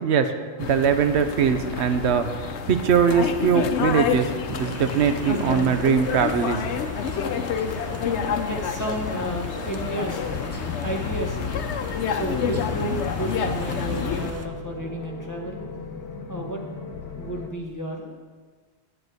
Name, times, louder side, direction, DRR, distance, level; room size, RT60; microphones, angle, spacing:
voice 1, 0.0-6.6, right 7 dB, 80° right, 8 dB, 1.0 m, -22 dB
sound 1, 0.6-14.3, left 7 dB, 85° left, 0.9 m, -28 dB
sound 2, 4.5-14.5, right 2 dB, 25° right, 0.3 m, -39 dB
voice 2, 8.5-10.3 10.6-15.6 16.3-16.8 17.2-18.2, right 1 dB, 15° left, -1 dB, 1.0 m, -32 dB
sound 3, 9.8-17.5, left 4 dB, 65° left, 1.1 m, -38 dB
9.9 x 5.0 x 7.8 m, 1.5 s
omnidirectional pair, 1.1 m